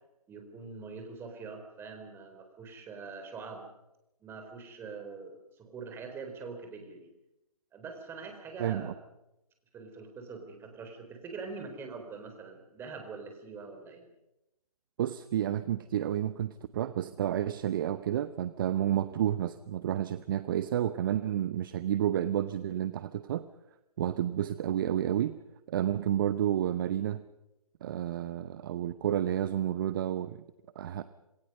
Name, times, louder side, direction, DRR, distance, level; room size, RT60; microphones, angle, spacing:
voice 1, 0.3-3.6 4.2-7.1 7.7-8.9 9.7-14.1, right 4 dB, 10° right, 5 dB, 4.0 m, -44 dB
voice 2, 8.6-8.9 15.0-23.5 24.0-25.4 25.7-27.2 27.8-30.4 30.7-31.0, right 11 dB, 35° right, 13 dB, 0.9 m, -30 dB
27.5 x 20.5 x 5.5 m, 0.92 s
figure-of-eight pair, 140°, 19 cm